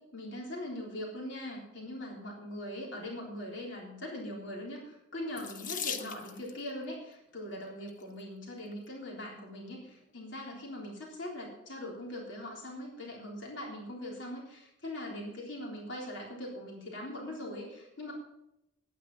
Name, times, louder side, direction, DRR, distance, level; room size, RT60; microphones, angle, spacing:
voice 1, 0.1-18.1, left 1 dB, 70° left, -2 dB, 3.6 m, -41 dB
Water tap faucet / Sink (filling or washing), 5.3-6.6 7.6-8.0 8.7-8.8 9.2-9.3, left 7 dB, 45° left, 0.9 m, -39 dB
10.5 x 9.5 x 6.2 m, 0.83 s
head